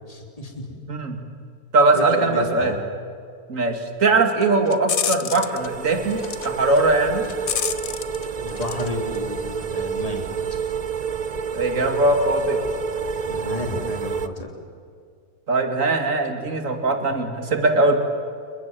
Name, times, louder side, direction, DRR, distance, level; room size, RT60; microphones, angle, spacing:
voice 1, 0.1-0.8 1.9-2.8 8.4-10.3 13.3-14.5, left 2 dB, 25° left, 2 dB, 3.6 m, -31 dB
voice 2, 1.7-2.7 3.5-7.2 11.5-12.7 15.5-18.0, right 2 dB, 55° right, 5 dB, 2.8 m, -20 dB
sound 1, 4.4-5.7 6.1-6.5 6.8-8.9 9.1-9.6, left 8 dB, 65° left, 1.4 m, -29 dB
sound 2, 5.3-14.3, right 6 dB, 40° right, 0.6 m, -29 dB
28.5 x 23.0 x 7.7 m, 2.2 s
omnidirectional pair, 1.6 m